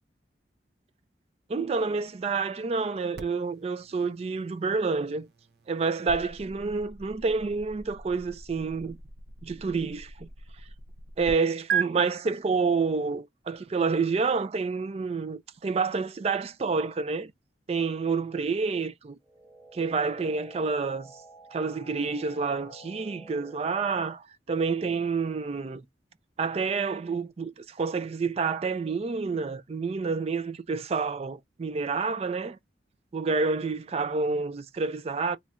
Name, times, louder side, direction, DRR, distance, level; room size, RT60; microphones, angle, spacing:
voice 1, 1.5-5.3 5.7-9.0 9.4-10.3 11.2-17.3 17.7-19.2 19.7-21.1 21.5-25.8 26.4-32.6 33.1-35.4, right 4 dB, 35° right, 0.3 m, -28 dB
sound 1, 3.1-11.3 11.7-11.8, right 7 dB, 65° right, 0.7 m, -38 dB
sound 2, 19.2-24.2, right 1 dB, 5° left, 0.9 m, -50 dB
3.1 x 2.3 x 4.2 m
head